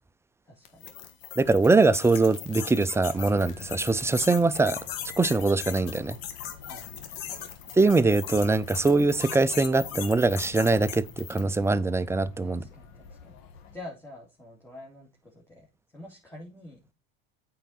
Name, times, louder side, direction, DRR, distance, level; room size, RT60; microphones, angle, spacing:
voice 1, 0.4-0.9 6.7-7.3 12.4-13.4 13.7-15.7 15.9-16.9, left 1 dB, 10° left, 2.5 m, -47 dB
sound 1, 0.6-11.6, left 9 dB, 85° left, 1.9 m, -39 dB
voice 2, 1.4-4.8 5.2-6.2 7.7-12.7, right 3 dB, 10° right, 0.4 m, -22 dB
sound 2, 3.1-13.8, left 6 dB, 65° left, 1.8 m, -50 dB
8.8 x 4.7 x 4.2 m
supercardioid pair, 110°, 30 cm